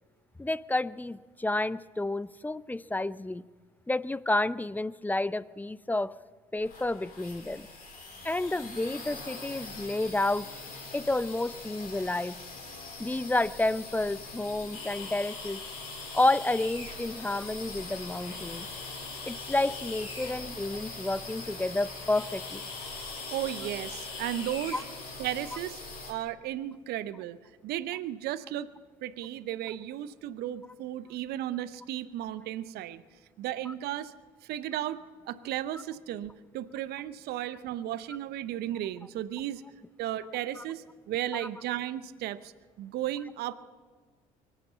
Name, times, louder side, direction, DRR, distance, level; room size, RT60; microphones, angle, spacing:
voice 1, 0.4-3.4 3.9-6.1 6.5-7.7 8.2-10.5 10.9-12.4 13.0-15.6 16.1-18.7 19.2-22.6 24.7-24.8 33.7-33.8 40.6-40.7, left 2 dB, 10° left, 18 dB, 0.5 m, -30 dB
sound 1, 6.6-26.1, left 3 dB, 55° left, 4.4 m, -43 dB
sound 2, 14.7-25.5, left 4 dB, 80° left, 3.1 m, -44 dB
voice 2, 23.3-24.8 25.2-27.4 27.6-28.7 29.0-33.0 33.4-34.1 34.4-35.0 35.3-39.6 40.0-42.5 42.8-43.5, right 12 dB, 65° right, 14 dB, 0.7 m, -34 dB
23.5 x 8.3 x 7.2 m, 1.5 s
hypercardioid pair, 60°, 18 cm